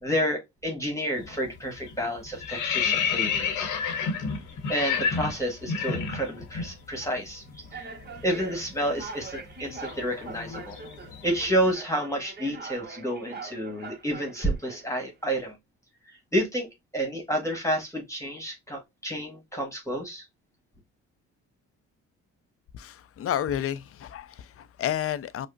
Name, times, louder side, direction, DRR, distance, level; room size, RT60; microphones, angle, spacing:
voice 1, 0.0-3.7 4.7-7.4 7.7-7.9 8.2-10.8 11.2-15.5 16.3-20.2, equal, 10° left, 1.3 m, -30 dB
sound 1, 1.2-1.5 1.8-6.7 7.0-7.2 7.5-11.5, left 6 dB, 85° left, 0.9 m, -30 dB
sound 2, 4.7-5.2 6.0-6.2 7.0-7.1 7.7-15.0, right 5 dB, 35° right, 0.8 m, -43 dB
voice 2, 22.7-25.5, left 10 dB, 50° left, 0.4 m, -31 dB
4.9 x 2.0 x 2.4 m
cardioid pair, 90°, 30 cm